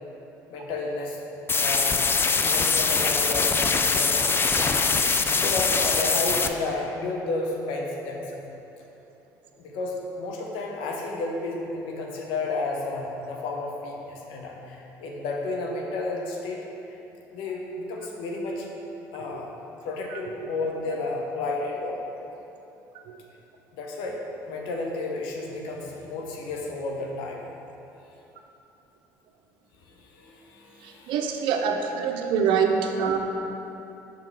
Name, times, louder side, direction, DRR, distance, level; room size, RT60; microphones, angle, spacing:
voice 1, 0.5-1.2 1.5-1.9 2.4-4.3 4.6-4.7 5.2-8.4 9.6-16.6 17.3-18.7 19.1-19.5 19.8-22.0 23.7-24.2 24.5-27.4 29.9-31.4, left 2 dB, 70° left, -1 dB, 0.9 m, -32 dB
sound 1, 1.5-6.5, left 4 dB, 25° left, 0.4 m, -23 dB
voice 2, 31.1-33.2, right 6 dB, 65° right, 4 dB, 0.5 m, -24 dB
5.6 x 3.7 x 4.6 m, 2.9 s
hypercardioid pair, 60°, 9 cm